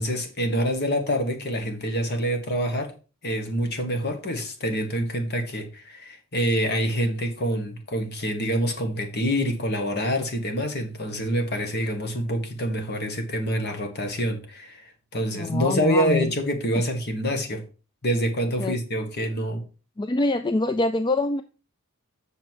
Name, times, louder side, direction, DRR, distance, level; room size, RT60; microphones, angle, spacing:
voice 1, 0.0-2.9 3.2-17.6 18.0-19.6, equal, 50° left, 1.7 m, -26 dB
voice 2, 15.4-16.3 18.6-18.7 20.0-21.4, left 2 dB, 20° left, 0.3 m, -24 dB
7.8 x 6.4 x 4.7 m
head